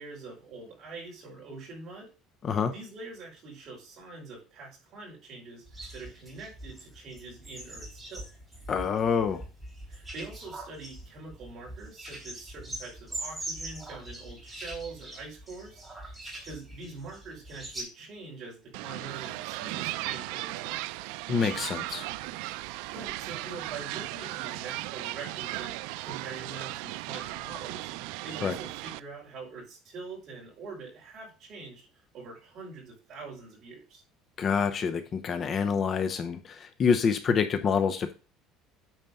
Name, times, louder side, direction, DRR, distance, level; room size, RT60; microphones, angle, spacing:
voice 1, 0.0-2.1 2.7-8.3 9.9-15.8 16.4-20.9 22.6-25.8 26.0-27.9 28.2-31.9 32.1-34.0, right 3 dB, 40° right, -2 dB, 5.1 m, -44 dB
sound 1, 5.7-17.8, right 1 dB, 5° right, 3.3 m, -42 dB
voice 2, 8.7-9.4 21.3-22.0 28.4-28.5 34.4-38.1, left 6 dB, 30° left, 9 dB, 0.7 m, -27 dB
sound 2, 18.7-29.0, right 18 dB, 85° right, 0.4 m, -36 dB
9.1 x 4.5 x 5.5 m, 0.33 s
cardioid pair, 165°, 0 cm